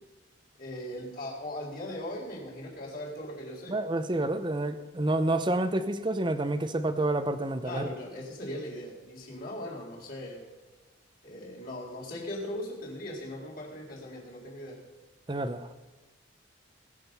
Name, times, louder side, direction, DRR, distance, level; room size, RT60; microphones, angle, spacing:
voice 1, 0.6-3.8 7.6-10.4 11.2-14.8, left 1 dB, 50° left, 4.1 m, -39 dB
voice 2, 3.7-7.9 15.3-15.7, right 2 dB, 25° right, 0.7 m, -29 dB
19.5 x 7.6 x 5.4 m
head